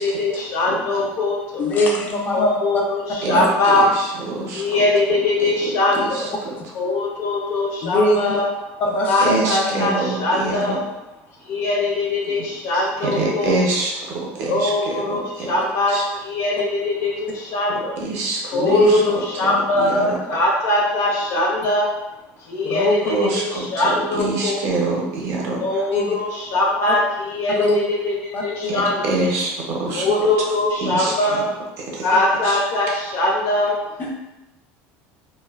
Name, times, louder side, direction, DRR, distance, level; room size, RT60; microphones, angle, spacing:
voice 1, 0.0-1.7 2.3-3.9 4.5-6.3 6.7-8.5 9.1-10.8 11.4-13.5 14.5-18.0 18.5-21.9 22.4-24.6 25.6-29.0 29.9-31.5 32.0-33.7, left 2 dB, 65° left, -2 dB, 0.7 m, -21 dB
voice 2, 1.6-2.8 3.3-3.5 7.8-8.3 8.8-9.3 18.5-19.0 22.6-23.0 25.9-26.2 26.9-27.0 27.5-27.8 28.3-28.7 29.9-30.2 34.0-34.2, left 1 dB, 35° left, -1 dB, 0.4 m, -21 dB
voice 3, 3.2-4.8 5.1-5.2 5.6-6.6 9.2-10.8 12.3-12.5 12.7-15.5 15.9-16.1 18.0-19.0 19.4-20.2 23.0-25.9 28.7-30.1 30.4-30.5 30.8-31.1 31.9-32.1 32.4-32.6, right 2 dB, 50° right, -1 dB, 0.6 m, -26 dB
2.6 x 2.1 x 2.3 m, 0.96 s
cardioid pair, 150°, 6 cm